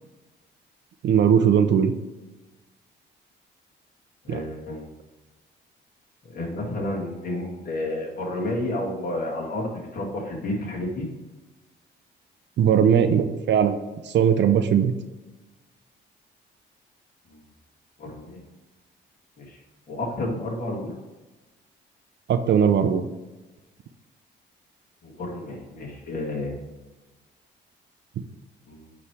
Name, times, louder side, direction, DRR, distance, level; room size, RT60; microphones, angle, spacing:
voice 1, 1.0-1.9 4.3-4.4 12.6-13.8 14.0-14.9 22.3-23.1, right 8 dB, 65° right, 8 dB, 0.6 m, -19 dB
voice 2, 4.2-4.9 6.3-11.1 17.3-17.4 18.0-18.5 19.4-19.6 19.9-20.9 25.0-26.6 28.7-28.9, left 1 dB, 50° left, -3 dB, 2.1 m, -31 dB
8.4 x 3.3 x 4.8 m, 1.1 s
cardioid pair, 90°, 20 cm